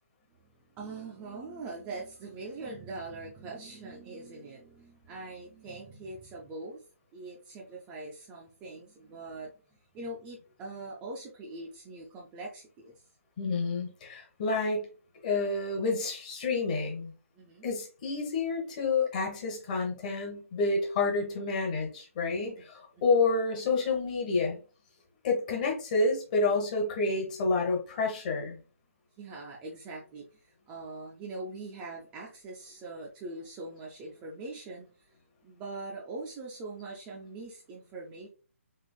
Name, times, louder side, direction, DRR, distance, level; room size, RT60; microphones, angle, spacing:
voice 1, 0.7-6.8 7.1-9.5 9.9-12.9 17.3-17.7 22.6-22.7 22.9-23.2 29.2-35.1 35.4-38.3, right 2 dB, 15° right, -3 dB, 0.4 m, -42 dB
voice 2, 13.4-14.9 15.2-17.1 17.6-24.6 25.2-28.6, left 3 dB, 30° left, 1 dB, 0.9 m, -29 dB
3.4 x 3.0 x 2.2 m, 0.36 s
figure-of-eight pair, 140°, 8 cm